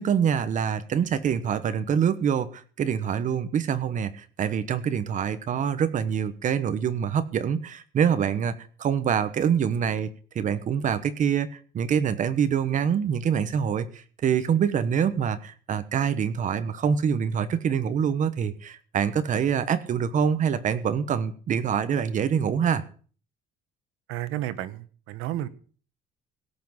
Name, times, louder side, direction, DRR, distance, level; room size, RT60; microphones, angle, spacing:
voice 1, 0.0-8.5 8.8-22.8, right 7 dB, 40° right, 12 dB, 1.1 m, -25 dB
voice 2, 24.1-25.5, right 13 dB, 90° right, 14 dB, 1.2 m, -32 dB
17.0 x 6.0 x 7.2 m, 0.42 s
cardioid pair, 160°, 21 cm